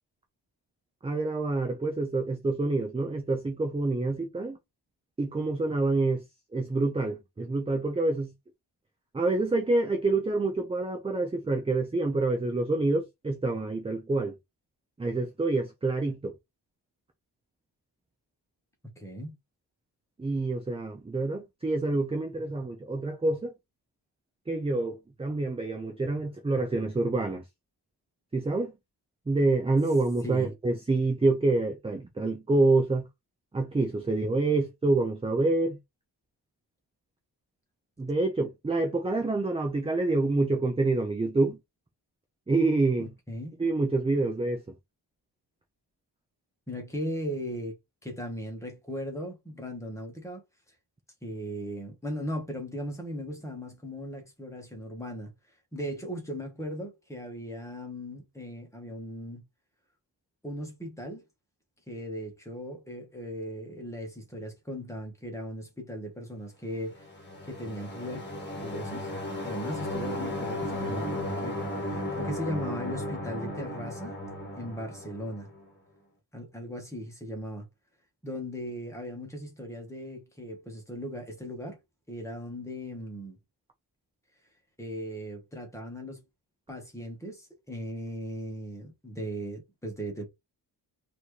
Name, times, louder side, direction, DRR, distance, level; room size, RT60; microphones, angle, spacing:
voice 1, 1.0-4.6 5.2-6.2 6.5-8.3 9.1-14.3 15.0-16.3 20.2-23.5 24.5-27.4 28.3-28.7 29.3-33.1 33.5-35.8 38.0-41.6 42.5-43.1 43.6-44.6, right 2 dB, 15° right, 0.6 m, -27 dB
voice 2, 19.0-19.3 30.2-30.5 43.0-43.6 46.7-47.8 48.0-50.4 51.2-55.3 55.7-59.4 60.4-61.2 61.9-67.1 67.5-68.2 68.6-69.1 69.4-74.1 74.6-75.5 76.3-77.7 78.2-81.8 82.1-83.4 84.8-86.2 86.7-90.3, equal, 5° left, 1.4 m, -38 dB
sound 1, 67.0-75.7, left 1 dB, 25° left, 1.5 m, -35 dB
4.3 x 2.9 x 3.2 m
wide cardioid pair, 170°, 40 cm